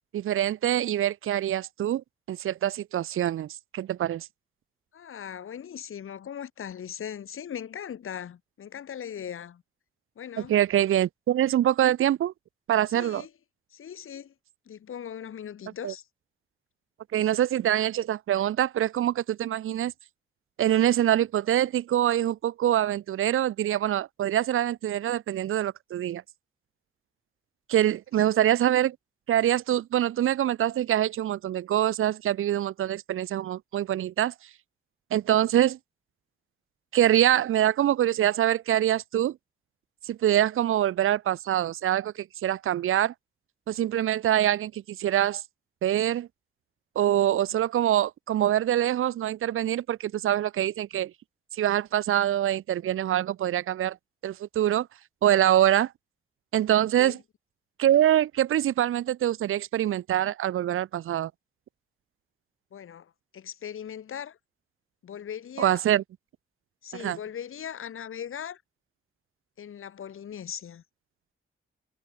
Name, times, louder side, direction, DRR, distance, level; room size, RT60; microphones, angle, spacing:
voice 1, 0.1-4.3 10.4-12.3 12.7-13.2 15.8-15.9 17.1-19.9 20.6-26.2 27.7-29.0 29.3-34.3 35.1-35.8 36.9-39.4 40.1-43.1 43.7-45.4 45.8-46.3 47.0-51.1 51.5-54.0 54.2-54.9 55.2-55.9 56.5-57.2 57.8-61.3 65.6-66.0 66.9-67.2, right 12 dB, 80° right, 0.5 m, -24 dB
voice 2, 4.9-9.6 10.2-10.6 12.9-13.3 13.7-14.3 14.7-16.0 28.1-28.3 57.0-57.2 62.7-64.4 65.0-65.8 66.8-68.6 69.6-70.8, left 9 dB, 85° left, 2.2 m, -39 dB
wide cardioid pair, 135°, 21 cm